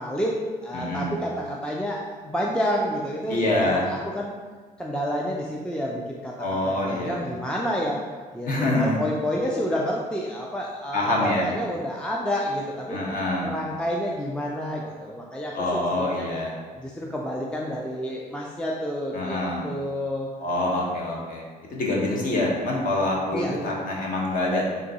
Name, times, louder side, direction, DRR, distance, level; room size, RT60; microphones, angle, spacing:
voice 1, 0.0-4.3 4.8-8.0 8.3-13.0 13.4-16.3 16.8-19.4 19.6-20.3 23.3-23.6, equal, 5° left, -2 dB, 0.3 m, -29 dB
voice 2, 0.7-1.1 3.3-3.8 6.4-7.3 8.5-9.0 10.9-11.5 12.9-13.5 15.5-16.6 19.1-19.7 20.4-21.4 21.7-24.7, left 1 dB, 55° left, -2 dB, 1.0 m, -25 dB
3.6 x 2.6 x 4.1 m, 1.4 s
cardioid pair, 110°, 17 cm